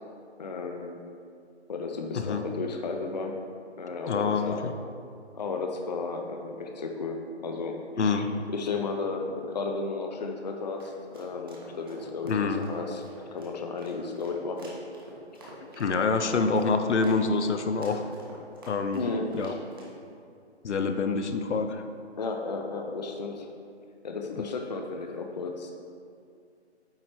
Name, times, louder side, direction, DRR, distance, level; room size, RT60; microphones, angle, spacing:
voice 1, 0.4-1.0 1.7-3.4 3.8-4.6 5.3-8.3 8.5-13.0 13.3-14.7 18.9-19.3 21.1-21.2 22.2-23.5 24.0-25.7, left 3 dB, 40° left, 3 dB, 0.5 m, -34 dB
voice 2, 4.1-4.7 8.0-8.3 12.3-12.6 15.8-18.0 18.7-19.0 19.3-19.5 20.6-21.8, left 4 dB, 80° left, 7 dB, 0.7 m, -26 dB
sound 1, 10.5-20.0, right 1 dB, 20° right, 0.8 m, -47 dB
8.8 x 3.1 x 4.4 m, 2.4 s
hypercardioid pair, 160°, 34 cm